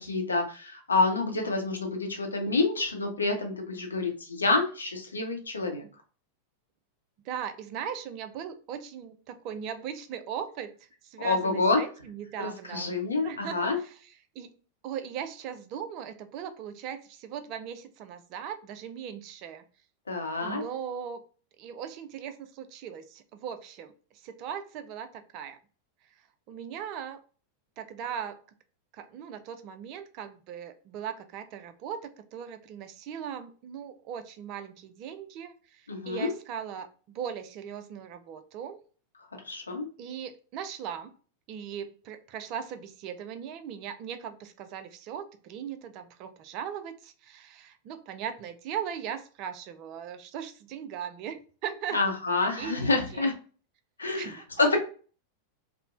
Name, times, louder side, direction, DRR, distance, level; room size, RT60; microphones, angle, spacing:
voice 1, 0.0-5.8 11.2-11.8 12.4-13.8 20.1-20.6 35.9-36.3 39.4-39.9 51.9-53.3 54.0-54.3 54.6-54.8, left 3 dB, 75° left, 3 dB, 0.6 m, -27 dB
voice 2, 7.2-10.7 11.0-12.9 13.2-14.5 14.8-19.7 20.4-21.2 21.6-25.6 26.5-27.2 27.8-28.4 28.9-38.8 40.0-41.1 41.5-52.0 52.6-53.3 54.1-54.8, right 8 dB, 40° right, 9 dB, 0.4 m, -39 dB
3.0 x 2.0 x 2.4 m, 0.39 s
figure-of-eight pair, 90°, 0 cm